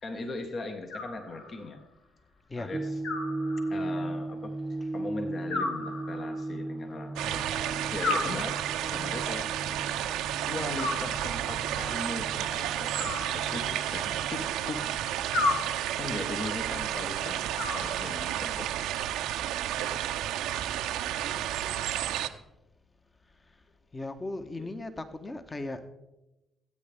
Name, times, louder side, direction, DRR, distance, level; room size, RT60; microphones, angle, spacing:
voice 1, 0.0-1.8 2.6-3.0 3.7-4.6 4.9-7.5 7.9-8.6 8.9-9.6 10.5-14.9 16.0-18.8 24.6-24.7, left 2 dB, 50° left, 5 dB, 1.4 m, -39 dB
Animal, 0.9-1.8 3.0-4.0 5.5-6.6 8.0-9.0 10.7-11.7 12.9-14.0 15.3-16.2 17.6-18.5, left 3 dB, 75° left, 1.6 m, -34 dB
sound 1, 2.7-22.1, right 2 dB, 25° right, 0.7 m, -39 dB
sound 2, 7.2-22.3, right 12 dB, 75° right, 0.6 m, -32 dB
voice 2, 21.1-22.4 23.9-25.9, left 2 dB, 30° left, 9 dB, 1.2 m, -39 dB
20.0 x 8.9 x 3.5 m, 0.97 s
hypercardioid pair, 45°, 0 cm